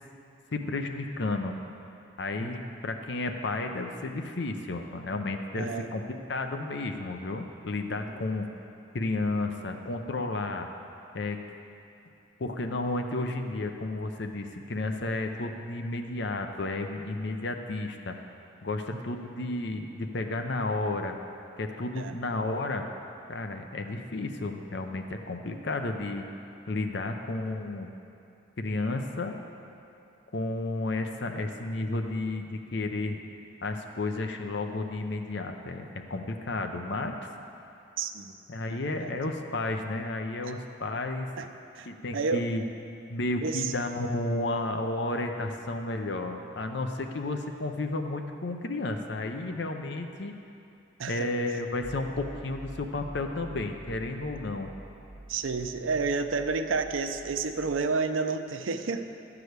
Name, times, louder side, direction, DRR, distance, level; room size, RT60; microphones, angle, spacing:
voice 1, 0.5-1.5 2.2-8.5 8.9-10.7 11.1-11.4 12.4-18.1 18.6-21.1 21.6-22.9 23.3-26.3 26.7-27.9 28.6-29.4 30.3-33.2 33.6-37.3 38.5-41.3 41.8-42.6 43.1-50.3 51.1-54.7, left 2 dB, 60° left, 5 dB, 0.6 m, -32 dB
voice 2, 5.5-5.9 22.0-22.1 38.0-38.3 38.7-39.1 40.5-40.6 41.4-41.5 41.8-41.9 42.1-42.4 43.4-43.7 51.0-51.3 55.3-59.1, right 4 dB, 90° right, 8 dB, 0.6 m, -30 dB
Synth Noise, 51.8-57.9, right 1 dB, 20° right, 1.3 m, -47 dB
12.0 x 4.9 x 8.0 m, 2.7 s
head